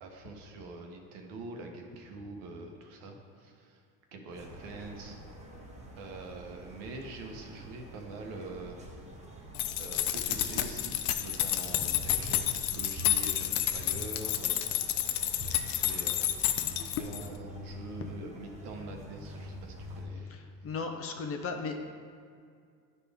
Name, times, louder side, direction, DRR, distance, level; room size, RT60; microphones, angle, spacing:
voice 1, 0.0-3.8 4.1-5.2 6.0-8.8 9.8-14.6 15.4-16.3 16.7-20.4, right 3 dB, 70° right, 2 dB, 1.2 m, -44 dB
sound 1, 4.3-20.1, equal, 15° right, 1.0 m, -46 dB
sound 2, 9.5-17.3, left 12 dB, 75° left, 0.6 m, -30 dB
voice 2, 20.3-21.7, left 4 dB, 35° left, 4 dB, 0.7 m, -36 dB
10.5 x 4.3 x 3.5 m, 2.2 s
supercardioid pair, 110°, 41 cm